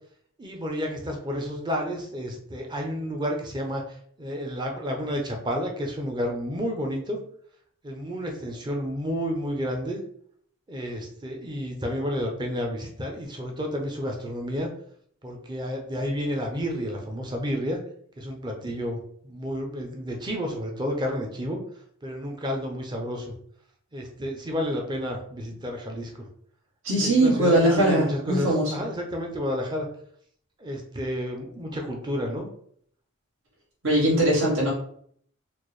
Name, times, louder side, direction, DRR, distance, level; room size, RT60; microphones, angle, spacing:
voice 1, 0.4-7.2 7.8-10.0 10.7-14.7 15.2-17.8 18.2-21.6 22.0-23.3 23.9-26.3 27.0-29.9 30.6-32.5, equal, 20° right, 2 dB, 0.6 m, -31 dB
voice 2, 26.8-28.7 33.8-34.7, right 1 dB, 65° right, -6 dB, 1.3 m, -21 dB
4.2 x 2.1 x 3.1 m, 0.62 s
head